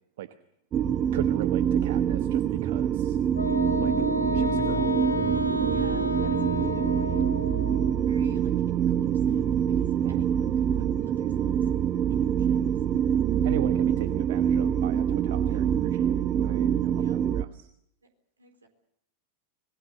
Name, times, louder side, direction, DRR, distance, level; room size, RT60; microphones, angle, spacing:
sound 1, 0.7-17.4, right 9 dB, 30° right, 0.8 m, -25 dB
voice 1, 1.1-3.2 3.8-3.9 4.3-4.9 10.0-10.2 13.4-17.0 17.3-17.7, right 12 dB, 55° right, 12 dB, 1.0 m, -38 dB
Wind instrument woodwind instrument, 3.3-8.0, left 2 dB, 85° left, 1.7 m, -30 dB
voice 2, 5.6-7.2 8.0-11.7 12.1-12.8 15.4-15.7 16.9-17.2 18.4-18.7, right 3 dB, 75° right, 7 dB, 4.1 m, -52 dB
sound 2, 7.2-7.5 9.1-9.2 10.2-10.5 11.1-11.2 11.8-11.9 12.9-13.3, left 10 dB, 55° left, 1.1 m, -47 dB
25.5 x 20.5 x 6.9 m, 0.74 s
figure-of-eight pair, 90°, 0 cm